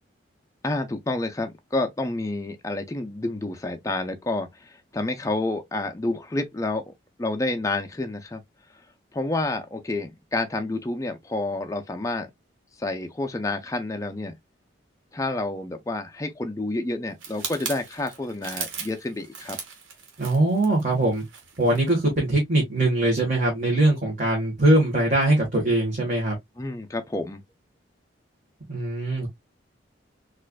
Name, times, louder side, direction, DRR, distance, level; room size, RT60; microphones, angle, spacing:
voice 1, 0.6-6.9 7.2-8.4 9.1-12.3 12.8-14.3 15.1-19.6 26.6-27.4, left 2 dB, 15° left, 0.4 m, -29 dB
sound 1, 17.2-21.9 22.3-22.5, right 6 dB, 90° right, 1.3 m, -38 dB
voice 2, 20.2-21.2 21.6-26.4 28.7-29.3, right 1 dB, 40° right, 1.3 m, -22 dB
4.4 x 2.5 x 2.2 m
head